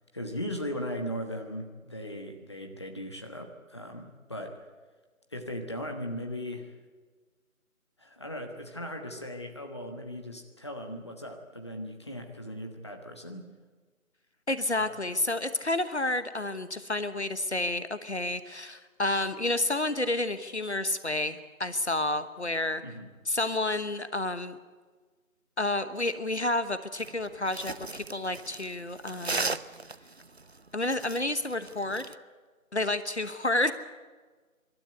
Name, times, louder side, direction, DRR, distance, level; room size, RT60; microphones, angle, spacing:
voice 1, 0.1-4.6 5.3-6.8 8.0-13.5 14.8-15.2 22.8-23.1, equal, 20° left, 3 dB, 1.2 m, -38 dB
voice 2, 14.5-22.8 23.3-24.6 25.6-29.6 30.7-32.2 32.7-33.7, left 2 dB, 50° left, 12 dB, 1.2 m, -30 dB
sound 1, 27.0-32.1, right 3 dB, 50° right, 0.7 m, -36 dB
27.0 x 13.0 x 9.7 m, 1.4 s
figure-of-eight pair, 160°, 42 cm